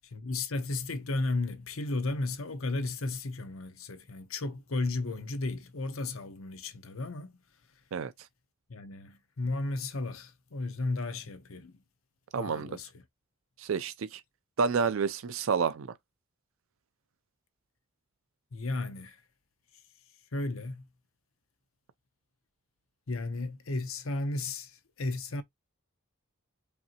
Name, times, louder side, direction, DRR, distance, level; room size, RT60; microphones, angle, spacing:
voice 1, 0.1-7.4 8.7-11.7 12.4-13.0 18.5-19.2 20.3-20.9 23.1-25.4, left 2 dB, 70° left, 0.9 m, -34 dB
voice 2, 12.3-12.8 13.6-14.2 14.6-15.9, right 5 dB, 65° right, 0.4 m, -29 dB
5.3 x 2.6 x 2.9 m
head